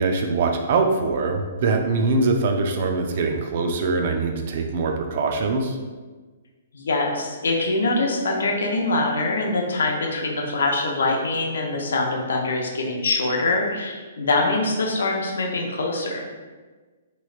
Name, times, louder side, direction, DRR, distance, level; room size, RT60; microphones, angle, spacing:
voice 1, 0.0-5.8, right 3 dB, 40° right, 4 dB, 0.4 m, -23 dB
voice 2, 6.7-16.2, left 2 dB, 85° left, 0 dB, 0.6 m, -24 dB
3.1 x 3.0 x 2.4 m, 1.3 s
hypercardioid pair, 170°, 0 cm